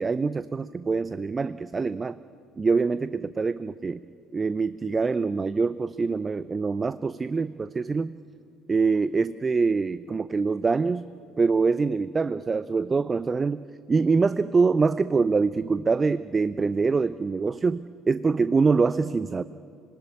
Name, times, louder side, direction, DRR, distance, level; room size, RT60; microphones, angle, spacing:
voice 1, 0.0-2.2 2.6-4.0 4.3-8.2 8.7-11.1 11.4-19.4, right 4 dB, 25° right, 15 dB, 0.5 m, -24 dB
25.5 x 19.0 x 9.9 m, 2.5 s
figure-of-eight pair, 55°, 0 cm